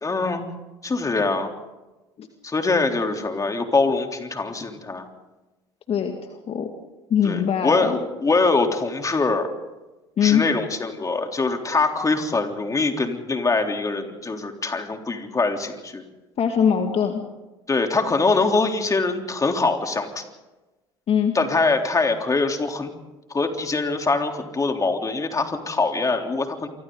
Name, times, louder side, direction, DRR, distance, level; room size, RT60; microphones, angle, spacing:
voice 1, 0.0-0.5 0.8-1.5 2.4-5.1 7.2-9.5 10.2-16.0 17.7-20.2 21.3-22.9 23.3-26.7, left 3 dB, 25° left, 4 dB, 3.6 m, -23 dB
voice 2, 5.9-6.7 7.1-8.0 10.2-10.4 16.4-17.2 21.1-21.3, left 8 dB, 45° left, 4 dB, 2.2 m, -22 dB
29.0 x 24.5 x 4.0 m, 1.1 s
hypercardioid pair, 60°, 14 cm